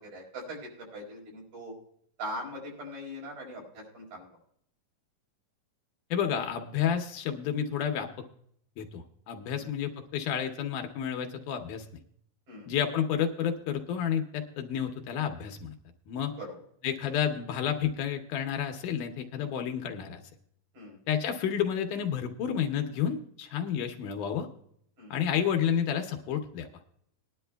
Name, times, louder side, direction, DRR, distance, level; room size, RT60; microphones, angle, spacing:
voice 1, 0.1-1.7 2.2-4.3 9.5-9.7 12.5-12.7 16.4-16.5 20.7-21.0 25.0-25.2, equal, 80° right, -1 dB, 5.7 m, -41 dB
voice 2, 6.1-8.1 8.8-11.9 12.7-15.7 16.1-16.3 16.8-20.2 21.1-24.5 25.1-26.7, left 8 dB, 75° left, 4 dB, 2.2 m, -30 dB
20.5 x 10.5 x 2.2 m, 0.68 s
omnidirectional pair, 4.0 m